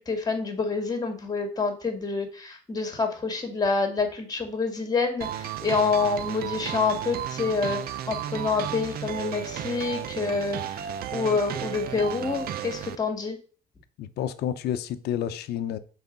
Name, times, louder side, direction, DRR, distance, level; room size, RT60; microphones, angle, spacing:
voice 1, 0.0-5.3 5.6-7.8 8.1-10.6 11.1-13.4, left 4 dB, 25° left, 2.1 m, -27 dB
sound 1, 5.2-13.0, right 10 dB, 65° right, 0.7 m, -34 dB
voice 2, 14.0-15.8, left 10 dB, 75° left, 0.8 m, -30 dB
7.0 x 4.2 x 5.3 m
cardioid pair, 110°, 17 cm